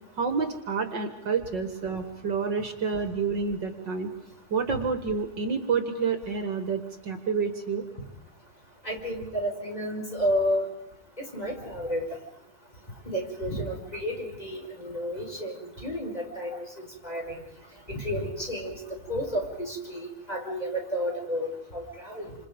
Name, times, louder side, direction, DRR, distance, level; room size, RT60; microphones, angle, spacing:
voice 1, 0.2-4.1 4.5-7.8, right 5 dB, 60° right, 6 dB, 2.3 m, -29 dB
voice 2, 8.8-10.7 11.2-12.1 13.1-16.6 17.0-17.4 17.9-18.8 19.1-22.3, equal, 20° left, 0 dB, 5.3 m, -31 dB
28.5 x 27.0 x 5.2 m, 0.84 s
omnidirectional pair, 2.3 m